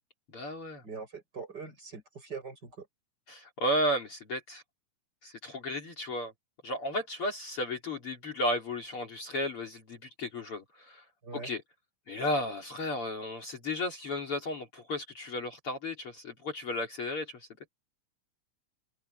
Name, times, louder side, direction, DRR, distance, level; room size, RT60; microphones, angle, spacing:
voice 1, 0.3-0.8 3.3-4.6 5.2-6.3 6.6-11.0 11.3-11.6 12.1-17.5, left 1 dB, 45° left, 4.0 m, -34 dB
voice 2, 0.8-2.9 11.2-11.5, right 5 dB, 30° right, 8.1 m, -42 dB
omnidirectional pair, 3.6 m